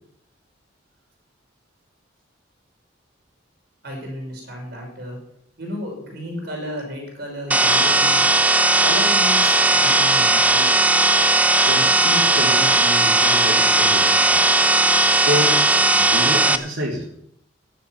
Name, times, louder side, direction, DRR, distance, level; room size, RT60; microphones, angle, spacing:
voice 1, 3.8-5.2 5.6-8.3 8.8-10.7, equal, 55° right, 0 dB, 5.5 m, -32 dB
sound 1, 7.5-16.6, right 2 dB, 10° right, 0.6 m, -17 dB
voice 2, 11.7-14.4 15.0-15.6 15.9-17.1, equal, 85° right, -6 dB, 3.3 m, -28 dB
14.5 x 11.0 x 6.0 m, 0.72 s
head